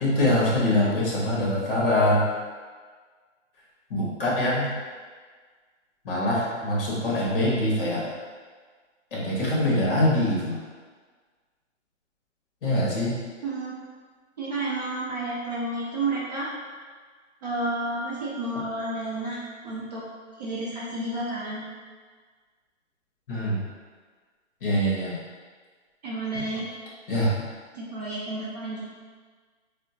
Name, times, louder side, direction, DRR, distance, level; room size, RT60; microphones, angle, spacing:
voice 1, 0.0-2.2 3.9-4.7 6.0-8.1 9.1-10.6 12.6-13.2 23.3-23.7 24.6-25.2 27.1-27.4, left 1 dB, 45° left, -5 dB, 1.1 m, -24 dB
voice 2, 13.4-13.8 14.4-16.5 17.4-19.4 19.6-20.0 20.4-21.7 26.0-26.6 27.7-28.9, right 2 dB, 35° right, -6 dB, 0.5 m, -31 dB
4.4 x 2.0 x 2.7 m, 1.5 s
hypercardioid pair, 160°, 38 cm